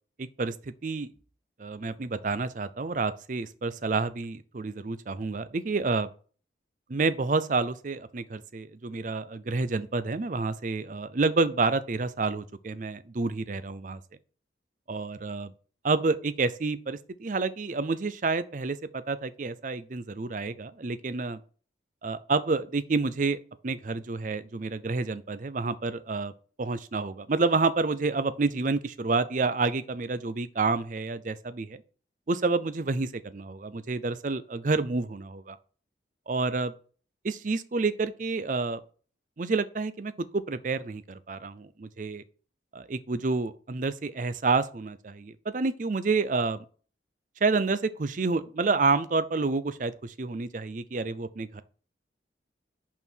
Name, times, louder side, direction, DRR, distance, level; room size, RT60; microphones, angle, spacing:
voice 1, 0.2-0.5 0.8-1.1 1.6-6.1 6.9-14.0 14.9-15.5 15.8-21.4 22.0-23.4 23.6-26.3 26.6-31.8 32.3-35.6 36.3-36.7 37.2-38.8 39.4-42.2 42.7-46.6 47.4-51.6, right 3 dB, 45° right, 0.5 m, -29 dB
5.5 x 4.5 x 6.2 m
head